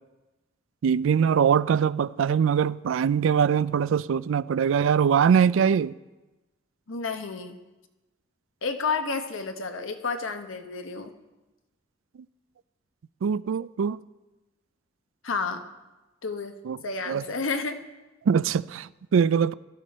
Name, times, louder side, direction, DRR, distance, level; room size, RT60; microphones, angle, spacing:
voice 1, 0.8-5.9 13.2-14.0 16.7-16.8 17.1-17.3 18.3-19.5, right 7 dB, 75° right, 0.3 m, -22 dB
voice 2, 6.9-7.6 8.6-11.1 15.2-15.6 16.2-16.5 16.8-17.8, left 4 dB, 90° left, 1.0 m, -30 dB
17.0 x 12.5 x 4.2 m
head